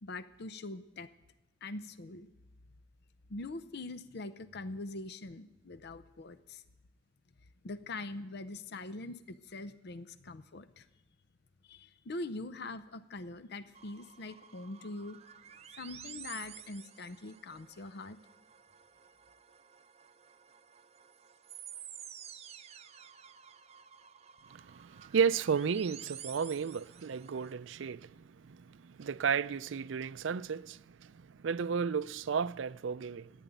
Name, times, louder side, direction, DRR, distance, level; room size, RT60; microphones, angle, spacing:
voice 1, 0.0-1.1 1.6-2.3 3.3-6.6 7.6-10.9 11.6-15.2 15.7-18.2, left 2 dB, 60° left, 0.6 m, -43 dB
sound 1, 13.7-27.5, right 9 dB, 35° right, 0.7 m, -52 dB
voice 2, 24.5-33.3, right 6 dB, 80° right, 0.4 m, -33 dB
15.0 x 10.0 x 9.2 m
head